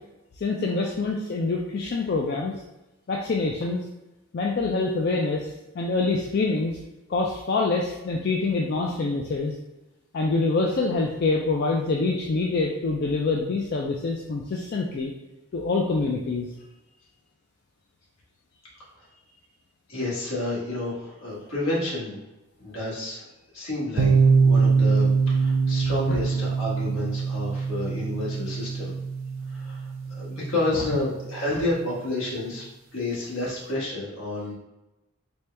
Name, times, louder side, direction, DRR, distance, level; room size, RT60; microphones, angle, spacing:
voice 1, 0.4-2.5 3.1-3.8 4.3-5.5 5.7-6.8 7.1-9.5 10.1-15.1 15.5-16.5 26.1-26.2, left 3 dB, 50° left, 0 dB, 0.3 m, -25 dB
voice 2, 19.9-22.2 22.6-23.3 23.5-28.9 29.5-32.6 32.9-34.5, left 2 dB, 75° left, -6 dB, 1.4 m, -30 dB
sound 1, 24.0-31.7, right 5 dB, 70° right, 0.5 m, -23 dB
4.3 x 2.2 x 3.3 m, 1.0 s
head